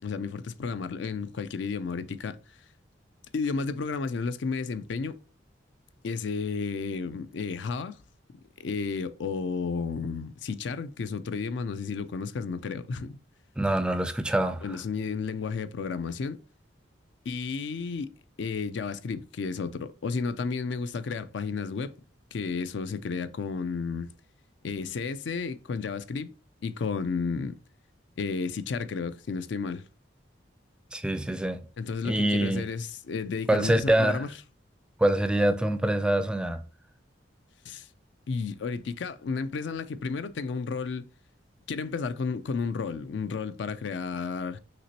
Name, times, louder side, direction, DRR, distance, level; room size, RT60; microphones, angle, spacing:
voice 1, 0.0-2.4 3.3-5.2 6.0-8.0 8.6-13.2 14.6-16.4 17.3-18.1 18.4-21.9 22.3-24.1 24.6-26.3 26.6-27.6 28.2-29.8 31.8-34.3 37.7-37.9 38.3-41.1 41.7-44.6, left 5 dB, 70° left, 0.4 m, -32 dB
voice 2, 13.6-14.6 30.9-31.6 32.0-32.7 33.5-34.3 35.0-36.6, right 1 dB, 5° right, 0.3 m, -25 dB
5.9 x 2.9 x 2.9 m
head